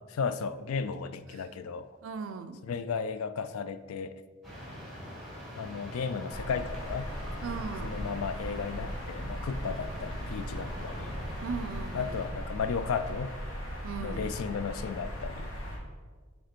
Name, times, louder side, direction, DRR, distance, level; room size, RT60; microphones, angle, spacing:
voice 1, 0.1-1.9 2.6-4.2 5.6-7.1 7.8-11.1 11.9-13.3 14.0-15.6, left 5 dB, 85° left, 12 dB, 0.4 m, -34 dB
voice 2, 2.0-2.6 7.4-8.1 11.4-12.2 13.8-14.3, right 5 dB, 70° right, 11 dB, 0.4 m, -38 dB
sound 1, 4.4-12.3, equal, ahead, 1.9 m, -43 dB
sound 2, 6.3-15.8, equal, 65° left, 1.6 m, -38 dB
7.7 x 3.4 x 4.3 m, 1.5 s
head